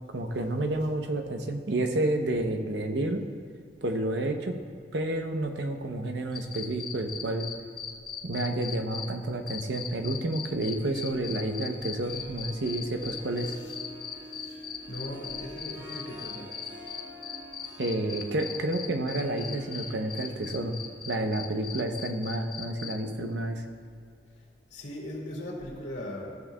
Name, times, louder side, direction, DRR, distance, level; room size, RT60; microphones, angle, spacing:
voice 1, 0.1-3.3 3.8-4.5 4.9-7.5 8.2-13.5 17.8-20.8 21.1-23.6, right 1 dB, 75° right, 5 dB, 0.7 m, -30 dB
sound 1, 6.3-9.1 9.5-22.9, left 7 dB, 25° left, 0.5 m, -38 dB
Harp, 10.7-23.5, left 1 dB, 25° right, 1.8 m, -48 dB
voice 2, 14.9-16.5 24.7-26.5, left 1 dB, 85° left, -2 dB, 2.1 m, -39 dB
14.0 x 7.2 x 2.2 m, 2.3 s
head